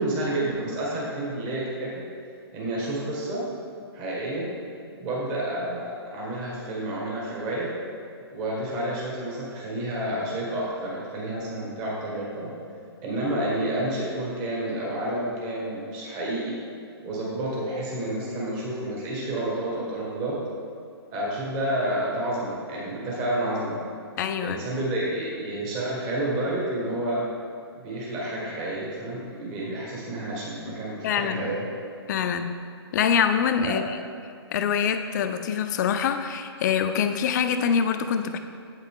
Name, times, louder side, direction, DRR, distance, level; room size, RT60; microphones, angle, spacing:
voice 1, 0.0-2.1 2.5-3.5 3.9-4.5 5.0-7.7 8.3-12.5 13.0-16.5 17.0-20.4 21.1-23.8 24.4-27.3 27.8-31.6 33.6-33.9, right 1 dB, 30° right, -5 dB, 1.6 m, -30 dB
voice 2, 24.2-24.6 31.0-31.5 32.1-32.5 32.9-34.0 34.5-38.4, left 7 dB, 45° left, 8 dB, 0.5 m, -25 dB
8.0 x 5.7 x 3.7 m, 2.3 s
hypercardioid pair, 140°, 14 cm